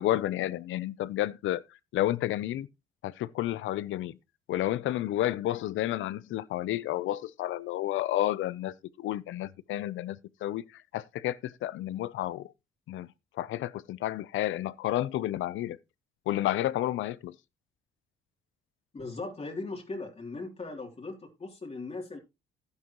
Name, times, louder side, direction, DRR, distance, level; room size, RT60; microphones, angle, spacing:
voice 1, 0.0-1.6 1.9-2.7 3.0-4.2 4.5-12.5 12.9-13.1 13.4-15.8 16.3-17.3, left 14 dB, 80° left, 0.7 m, -31 dB
voice 2, 18.9-22.2, left 3 dB, 30° left, 3.2 m, -38 dB
11.5 x 9.9 x 3.0 m
cardioid pair, 90°, 20 cm